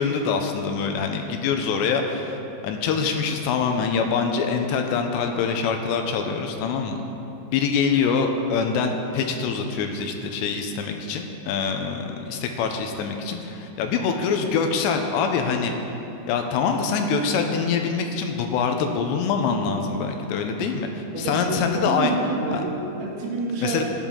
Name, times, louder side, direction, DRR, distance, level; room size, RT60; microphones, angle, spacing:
voice 1, 0.0-2.4 2.6-7.0 7.5-15.7 16.3-22.1 22.5-22.6 23.6-23.8, left 5 dB, 85° left, 4 dB, 2.9 m, -24 dB
voice 2, 21.1-22.7 23.0-23.8, right 3 dB, 55° right, -5 dB, 3.2 m, -28 dB
14.5 x 10.0 x 3.8 m, 2.9 s
omnidirectional pair, 5.0 m